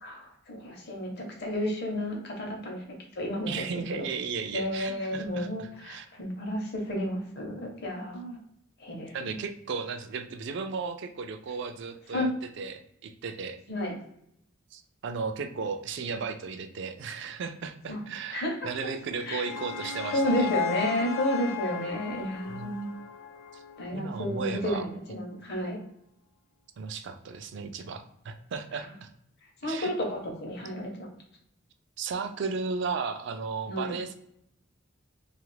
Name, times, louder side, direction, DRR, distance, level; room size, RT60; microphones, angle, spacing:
voice 1, 0.0-2.8 3.2-4.1 4.5-8.4 8.8-9.3 12.1-12.3 13.7-13.9 17.9-18.0 18.3-18.6 18.8-18.9 19.3-19.4 20.1-22.9 23.8-25.8 29.6-31.1 33.7-33.9, equal, 55° left, 1 dB, 0.8 m, -31 dB
voice 2, 3.4-6.1 9.1-12.3 12.6-13.6 14.7-20.5 22.5-22.7 23.5-23.6 23.9-24.9 26.8-29.1 29.6-29.9 32.0-34.2, right 5 dB, 60° right, 8 dB, 0.3 m, -35 dB
sound 1, 18.9-24.1, left 8 dB, 80° left, 0.4 m, -36 dB
2.7 x 2.4 x 3.2 m, 0.73 s
head